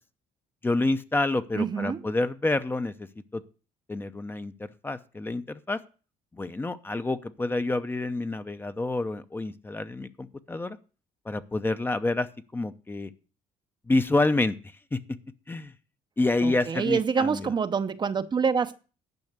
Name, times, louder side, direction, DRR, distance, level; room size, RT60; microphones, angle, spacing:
voice 1, 0.6-2.9 3.3-3.4 3.9-5.8 6.3-10.8 11.3-12.3 12.5-13.1 13.9-14.6 14.9-15.0 15.5-15.7 16.2-17.5, left 2 dB, 15° left, 0.7 m, -28 dB
voice 2, 1.5-2.1 16.4-18.8, right 6 dB, 30° right, 0.7 m, -26 dB
11.0 x 5.7 x 8.0 m
cardioid pair, 120°, 14 cm